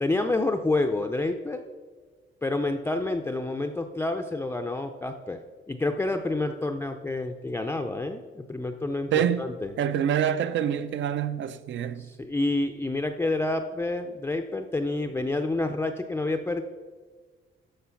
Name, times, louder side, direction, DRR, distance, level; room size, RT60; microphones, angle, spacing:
voice 1, 0.0-1.6 2.4-5.4 5.7-9.7 12.0-16.6, left 2 dB, 10° left, 0.4 m, -28 dB
voice 2, 9.1-9.5 9.8-12.1, right 9 dB, 60° right, 0.6 m, -26 dB
13.0 x 5.1 x 5.8 m
cardioid pair, 140°, 21 cm